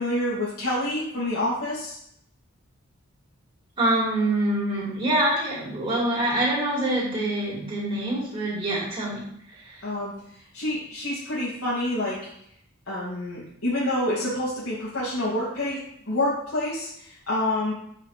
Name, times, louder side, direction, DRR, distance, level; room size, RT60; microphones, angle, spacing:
voice 1, 0.0-2.0 9.8-12.2 12.9-15.8 16.1-17.7, left 1 dB, 85° left, -9 dB, 2.4 m, -27 dB
voice 2, 3.8-9.2 9.5-9.8, right 1 dB, 25° right, -7 dB, 2.7 m, -25 dB
7.7 x 5.6 x 3.4 m, 0.70 s
head